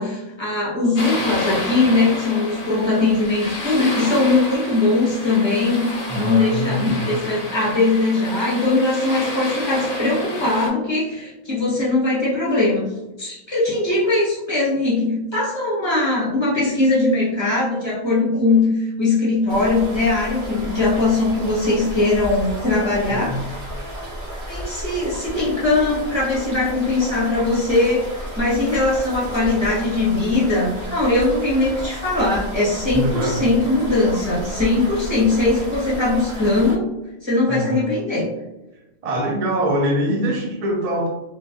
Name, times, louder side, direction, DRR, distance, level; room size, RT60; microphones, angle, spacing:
voice 1, 0.0-12.9 13.2-23.6 24.5-36.8 37.2-38.3, left 2 dB, 25° left, -6 dB, 1.0 m, -20 dB
sound 1, 1.0-10.7, left 1 dB, 45° left, 0.6 m, -30 dB
voice 2, 6.1-7.1 23.1-23.4 32.9-33.5 37.5-37.9 39.0-41.1, equal, 55° right, 0 dB, 0.4 m, -23 dB
sound 2, 19.5-36.7, equal, 80° right, 1.4 m, -32 dB
3.1 x 2.2 x 2.6 m, 0.99 s
omnidirectional pair, 1.1 m